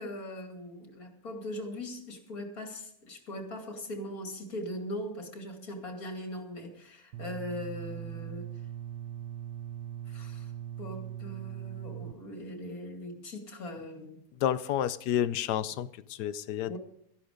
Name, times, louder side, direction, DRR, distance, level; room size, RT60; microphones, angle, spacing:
voice 1, 0.0-8.6 10.1-10.5 10.8-14.2 16.7-16.8, left 1 dB, 60° left, 3 dB, 2.7 m, -40 dB
sound 1, 7.1-12.1, right 10 dB, 85° right, 1.3 m, -40 dB
voice 2, 14.4-16.8, left 10 dB, 80° left, 16 dB, 1.2 m, -30 dB
13.5 x 11.5 x 5.1 m, 0.72 s
omnidirectional pair, 1.8 m